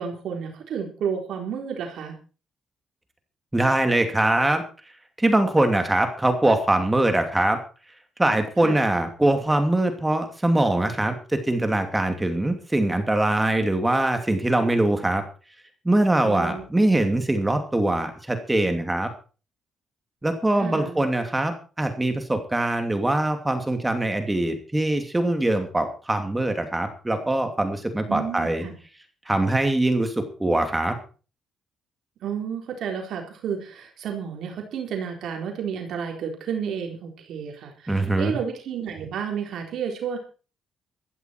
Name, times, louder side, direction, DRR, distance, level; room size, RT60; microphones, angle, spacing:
voice 1, 0.0-2.2 8.6-8.8 16.2-16.6 20.6-21.0 28.1-28.7 32.2-40.2, right 7 dB, 75° right, 2 dB, 4.0 m, -31 dB
voice 2, 3.5-4.6 5.2-7.6 8.2-15.2 15.8-19.1 20.2-28.7 29.3-31.0 37.9-38.4, right 1 dB, 15° right, 6 dB, 2.7 m, -22 dB
15.0 x 14.0 x 4.6 m, 0.36 s
cardioid pair, 90°, 0 cm